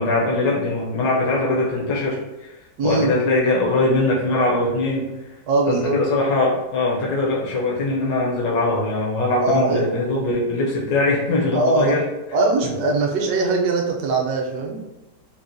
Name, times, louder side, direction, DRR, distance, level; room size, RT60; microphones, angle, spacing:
voice 1, 0.0-2.5 2.8-5.1 5.7-12.0, left 2 dB, 70° left, -3 dB, 1.1 m, -21 dB
voice 2, 2.8-3.2 5.5-6.0 9.4-9.8 11.5-12.0 12.3-14.8, right 3 dB, 70° right, 1 dB, 1.1 m, -21 dB
4.0 x 2.1 x 2.5 m, 0.97 s
omnidirectional pair, 1.9 m